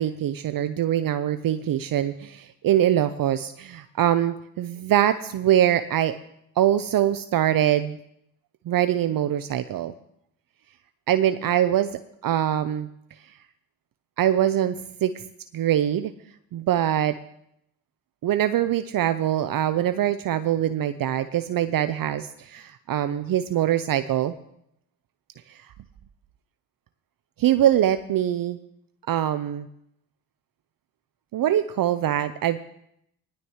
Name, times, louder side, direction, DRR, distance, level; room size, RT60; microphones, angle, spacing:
voice 1, 0.0-6.1 6.6-8.0 8.7-9.9 11.1-11.9 12.2-12.9 14.2-15.2 15.5-16.1 16.5-17.2 18.2-24.3 25.5-25.6 27.4-28.6 29.1-29.7 31.3-32.6, right 11 dB, 55° right, 11 dB, 0.7 m, -23 dB
19.0 x 11.0 x 3.2 m, 0.76 s
supercardioid pair, 55°, 42 cm